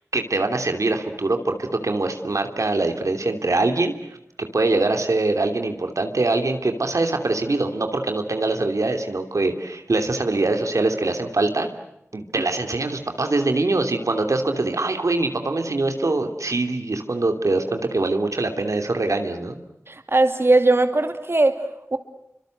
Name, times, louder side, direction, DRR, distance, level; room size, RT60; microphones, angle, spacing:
voice 1, 0.1-3.9 4.5-11.7 12.1-19.6, right 2 dB, 90° right, 6 dB, 2.8 m, -23 dB
voice 2, 19.9-22.0, right 2 dB, 50° right, 7 dB, 2.4 m, -19 dB
29.0 x 25.5 x 7.9 m, 0.82 s
wide cardioid pair, 50°, 5 cm